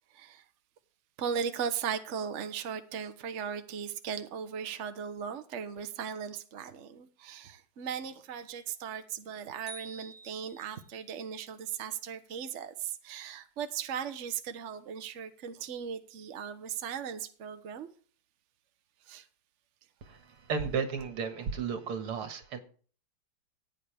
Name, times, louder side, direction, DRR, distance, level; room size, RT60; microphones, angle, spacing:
voice 1, 0.1-0.4 1.2-17.9 19.0-19.3, right 7 dB, 45° right, 1.0 m, -37 dB
sound 1, 9.7-11.1, right 2 dB, 25° left, 5.6 m, -49 dB
voice 2, 20.0-22.6, right 5 dB, 80° right, 2.5 m, -34 dB
15.0 x 9.2 x 3.5 m
omnidirectional pair, 2.4 m